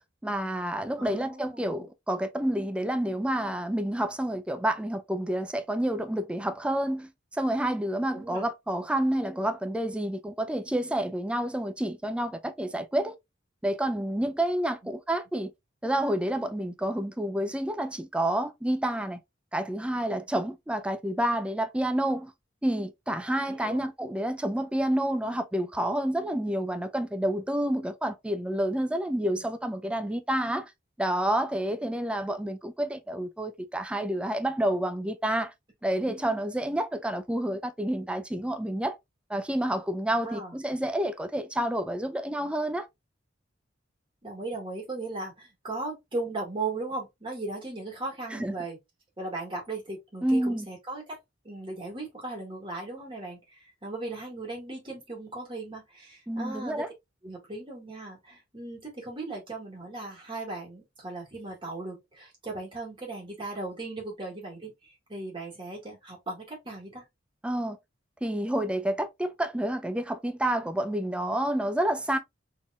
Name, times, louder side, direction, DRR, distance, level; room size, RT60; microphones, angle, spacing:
voice 1, 0.2-13.1 13.6-15.5 15.8-19.2 19.5-22.3 22.6-30.7 31.0-35.5 35.8-39.0 39.3-42.9 48.3-48.5 50.2-50.7 56.3-56.9 67.4-67.8 68.2-72.2, right 1 dB, 5° right, 0.4 m, -29 dB
voice 2, 1.0-1.9 8.1-8.5 14.8-14.9 23.5-23.8 40.2-40.6 44.2-48.8 49.2-51.0 51.4-56.8 57.2-67.0, right 2 dB, 25° right, 1.9 m, -37 dB
4.1 x 3.6 x 2.3 m
head